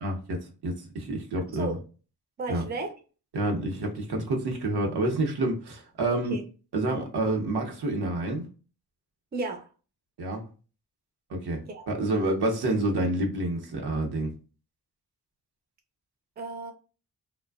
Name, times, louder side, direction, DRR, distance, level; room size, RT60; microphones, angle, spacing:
voice 1, 0.0-1.8 2.5-2.6 3.3-6.4 6.7-8.5 10.2-10.5 11.3-14.3, right 2 dB, 80° right, 0.8 m, -28 dB
voice 2, 2.4-2.9 6.1-6.4 9.3-9.7 11.7-11.9 16.4-16.7, right 3 dB, 25° right, 0.5 m, -34 dB
2.5 x 2.2 x 2.3 m
wide cardioid pair, 100°, 39 cm